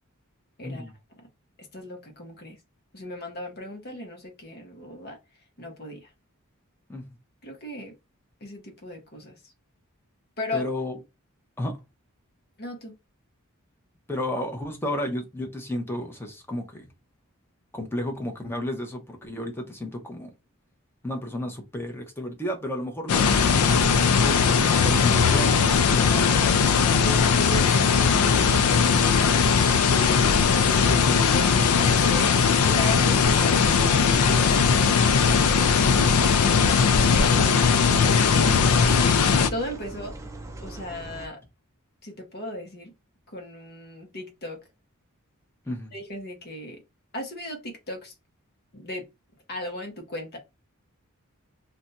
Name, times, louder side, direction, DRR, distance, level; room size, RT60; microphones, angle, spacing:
voice 1, 0.6-1.3 1.6-2.6 2.9-5.2 5.6-6.1 7.4-7.9 8.4-9.5 10.4-10.7 12.6-12.9 26.0-26.4 27.0-33.8 39.5-40.2 40.6-41.4 42.0-42.9 43.3-44.6 45.9-46.8 47.1-48.1 48.7-49.1 49.5-50.4, left 1 dB, 45° left, 0.8 m, -37 dB
voice 2, 10.5-11.0 11.6-11.8 14.1-16.9 17.7-20.3 21.0-25.7 26.0-26.5 45.7-45.9, left 1 dB, 10° left, 0.7 m, -32 dB
sound 1, 23.1-39.5, left 6 dB, 80° left, 0.4 m, -19 dB
sound 2, 31.5-41.3, right 1 dB, 15° right, 0.4 m, -40 dB
2.5 x 2.2 x 3.9 m
head